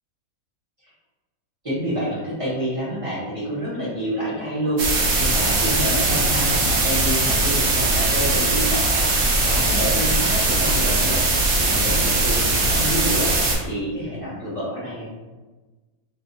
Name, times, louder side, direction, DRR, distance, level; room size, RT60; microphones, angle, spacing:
voice 1, 1.6-15.1, equal, 25° right, -9 dB, 0.9 m, -28 dB
sound 1, 4.8-13.5, right 2 dB, 65° right, 0.9 m, -20 dB
2.7 x 2.6 x 2.7 m, 1.2 s
omnidirectional pair, 1.6 m